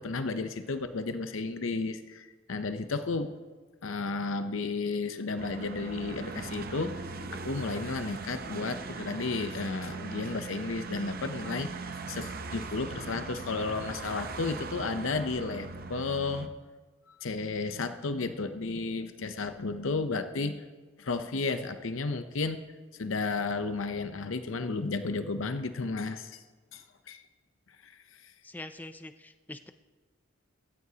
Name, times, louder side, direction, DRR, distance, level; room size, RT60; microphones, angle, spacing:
voice 1, 0.0-3.3 3.8-16.5 17.1-20.6 21.0-22.6 22.9-26.4 26.7-27.2 27.8-28.3, left 3 dB, 70° left, 10 dB, 0.7 m, -33 dB
sound 1, 5.4-16.5, right 4 dB, 45° right, 0.7 m, -40 dB
voice 2, 28.4-29.7, left 1 dB, 10° left, 9 dB, 0.3 m, -44 dB
16.0 x 14.5 x 2.8 m, 1.4 s
head